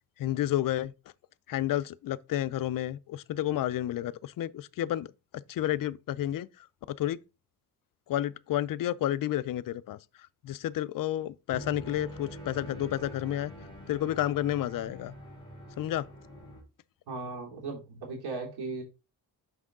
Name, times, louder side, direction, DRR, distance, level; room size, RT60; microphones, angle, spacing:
voice 1, 0.2-0.9 1.5-5.1 5.5-6.5 6.9-7.2 8.1-10.0 10.4-13.5 13.9-15.1 15.8-16.0, left 13 dB, 60° left, 0.5 m, -30 dB
sound 1, 11.5-16.6, equal, 10° left, 2.3 m, -45 dB
voice 2, 17.1-18.8, right 3 dB, 90° right, 2.9 m, -37 dB
6.1 x 5.3 x 3.7 m
cardioid pair, 125°, 38 cm